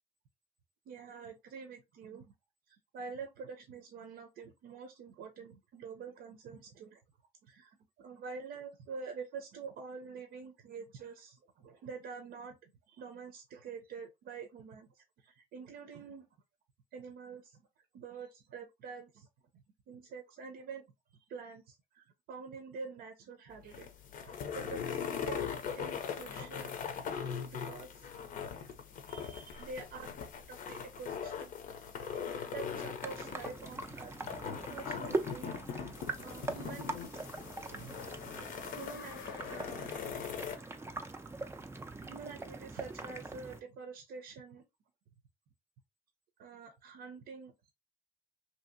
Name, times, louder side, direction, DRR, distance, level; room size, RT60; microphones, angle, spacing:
voice 1, 0.9-2.2 2.7-7.0 7.4-7.7 8.0-16.3 16.9-17.6 17.9-19.3 19.5-20.8 21.3-23.9 24.2-26.7 27.5-28.1 29.1-30.1 30.5-31.5 31.9-32.1 32.4-34.2 34.4-35.5 36.1-37.2 37.7-38.0 38.7-39.9 40.1-40.3 42.0-44.6 46.4-47.7, right 5 dB, 70° right, 0.6 m, -47 dB
sound 1, 23.5-40.6, left 7 dB, 55° left, 0.6 m, -41 dB
sound 2, 33.0-43.6, right 3 dB, 15° right, 0.4 m, -42 dB
sound 3, 38.5-41.6, left 7 dB, 85° left, 0.8 m, -52 dB
2.8 x 2.8 x 2.6 m
cardioid pair, 110°, 17 cm